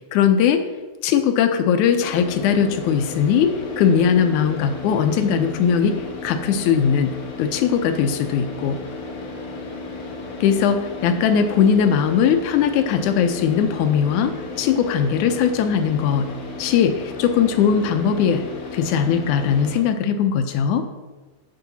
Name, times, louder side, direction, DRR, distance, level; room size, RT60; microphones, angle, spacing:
voice 1, 0.1-0.6 1.0-6.0 6.2-8.8 10.4-16.3 16.6-18.5 18.7-20.8, left 7 dB, 80° left, 7 dB, 2.2 m, -19 dB
Car / Idling, 2.0-19.8, left 3 dB, 50° left, 1.5 m, -34 dB
11.5 x 6.7 x 4.1 m, 1.3 s
omnidirectional pair, 3.6 m